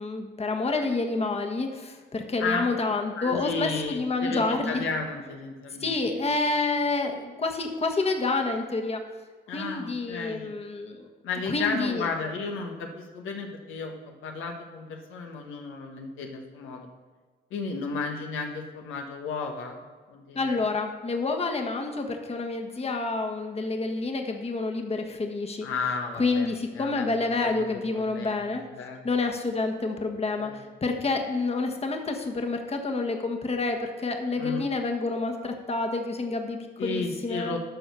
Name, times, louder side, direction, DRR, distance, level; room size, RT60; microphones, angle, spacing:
voice 1, 0.0-4.8 5.8-9.0 9.5-11.1 11.5-12.0 20.3-25.7 26.2-28.6 29.0-37.5, left 3 dB, 30° left, 4 dB, 1.4 m, -28 dB
voice 2, 3.1-5.9 9.5-10.5 11.2-16.9 17.5-19.8 20.1-20.6 25.6-26.5 26.7-27.1 27.4-27.7 27.9-28.5 28.7-29.0 30.4-30.6 34.4-34.7 36.8-37.6, left 4 dB, 85° left, 2 dB, 1.4 m, -33 dB
12.0 x 4.7 x 6.9 m, 1.4 s
cardioid pair, 90°, 20 cm